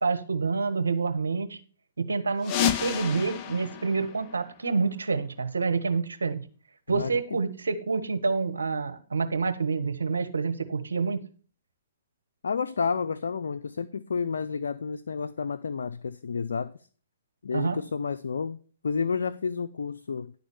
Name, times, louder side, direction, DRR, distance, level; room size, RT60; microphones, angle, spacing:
voice 1, 0.0-1.6 2.0-6.4 6.9-11.2 17.5-17.8, right 4 dB, 85° right, 1.2 m, -28 dB
sound 1, 2.4-5.0, left 9 dB, 35° left, 0.7 m, -30 dB
voice 2, 6.9-7.4 12.4-16.7 17.4-18.6 18.8-20.3, left 5 dB, 75° left, 0.5 m, -30 dB
11.0 x 4.0 x 6.9 m
hypercardioid pair, 125°, 0 cm